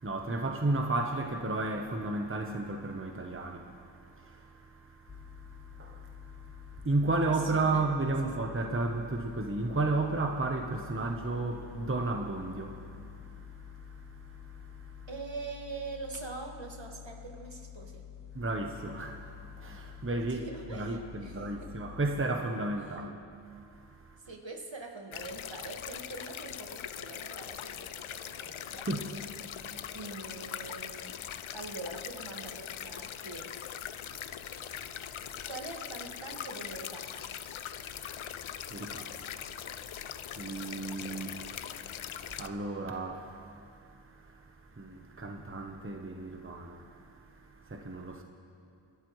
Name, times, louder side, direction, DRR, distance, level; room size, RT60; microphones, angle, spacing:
voice 1, 0.0-15.1 18.3-23.2 23.4-24.2 28.9-29.1 34.1-35.5 37.8-48.2, right 2 dB, 25° right, 1.0 m, -34 dB
sound 1, 5.1-22.3, left 9 dB, 40° left, 0.8 m, -48 dB
voice 2, 7.3-7.9 8.2-8.3 15.1-18.0 20.2-21.7 24.2-28.9 29.9-31.1 31.5-33.5 35.5-37.3, right 3 dB, 60° right, 1.8 m, -43 dB
sound 2, 25.1-42.5, left 9 dB, 70° left, 0.6 m, -41 dB
27.0 x 12.0 x 3.2 m
wide cardioid pair, 45°, 49 cm